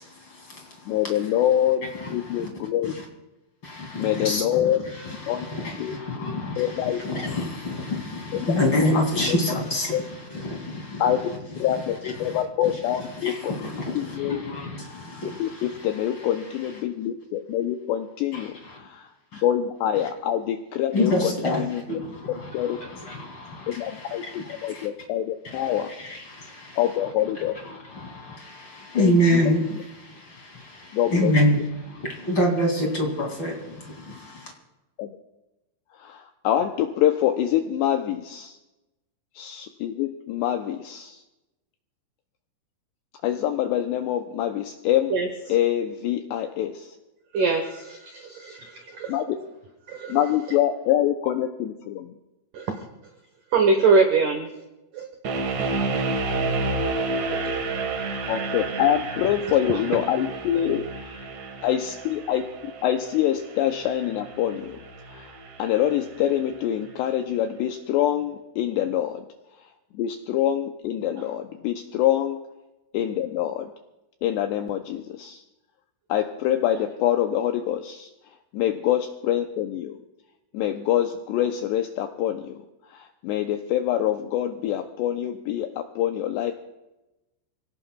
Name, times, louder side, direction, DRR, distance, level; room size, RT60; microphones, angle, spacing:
voice 1, 0.0-1.3 1.9-2.5 2.8-3.0 3.6-11.1 11.8-12.7 13.2-15.9 18.3-18.9 19.3-19.4 20.9-24.9 25.4-26.8 27.6-34.5, left 1 dB, 35° left, 2.3 m, -28 dB
voice 2, 0.9-1.8 2.1-2.9 4.0-4.8 5.1-5.5 5.8-6.0 6.6-7.0 8.3-8.5 8.8-8.9 9.3-9.4 9.9-10.0 11.0-11.2 11.6-13.7 14.0-14.4 15.4-19.1 19.4-21.8 22.5-22.8 23.7-25.9 26.8-27.5 29.0-29.8 30.9-31.6 35.0-35.2 36.0-38.6 39.4-41.2 43.2-45.1 45.5-46.9 49.1-49.4 50.1-52.1 58.3-61.3 61.6-62.4 62.8-64.8 65.1-65.3 65.6-69.3 69.9-72.4 72.9-73.7 74.2-75.4 76.1-78.1 78.5-80.0 80.5-82.6 82.9-86.5, left 11 dB, 90° left, 2.4 m, -25 dB
voice 3, 47.3-49.1 49.9-50.2 52.5-52.8 53.5-54.5 54.9-55.1 55.5-56.2 57.3-57.6 59.7-60.0, right 4 dB, 80° right, 1.8 m, -24 dB
sound 1, 55.2-66.3, right 3 dB, 65° right, 1.9 m, -30 dB
28.0 x 17.5 x 2.3 m
omnidirectional pair, 5.7 m